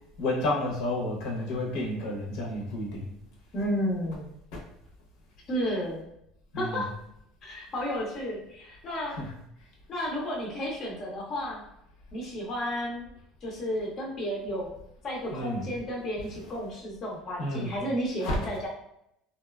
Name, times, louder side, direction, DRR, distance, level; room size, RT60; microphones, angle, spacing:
voice 1, 0.2-3.1 6.5-6.8 9.2-9.3 15.3-15.6 17.4-17.7 18.2-18.4, left 1 dB, 75° left, -1 dB, 0.7 m, -30 dB
voice 2, 3.5-4.3 5.5-6.1 6.5-6.9 7.4-9.2 9.9-11.6 12.1-13.1 13.4-14.8 15.0-18.7, equal, 40° left, -3 dB, 0.6 m, -32 dB
2.6 x 2.2 x 2.3 m, 0.77 s
cardioid pair, 135°, 0 cm